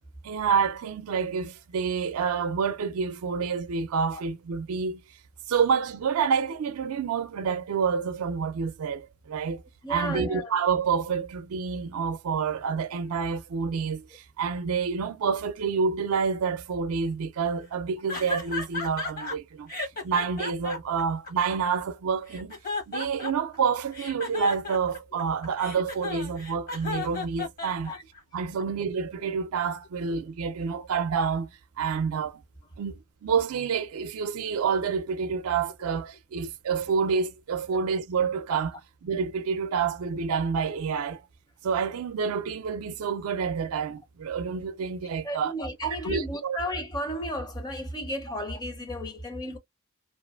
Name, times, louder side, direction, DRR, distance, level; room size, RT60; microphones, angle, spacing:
voice 1, 0.2-5.0 5.5-9.6 9.9-19.7 20.0-22.5 22.9-27.9 28.3-31.5 31.8-32.4 32.8-41.2 41.6-45.5 45.8-46.6 48.3-48.4, right 6 dB, 85° right, 0.4 m, -28 dB
voice 2, 9.8-10.5 27.9-28.0 45.2-49.6, equal, 20° left, 0.6 m, -33 dB
sound 1, 18.1-19.4 19.7-21.8 22.3-23.6 23.9-28.2, left 3 dB, 40° left, 1.0 m, -34 dB
2.5 x 2.5 x 2.3 m
head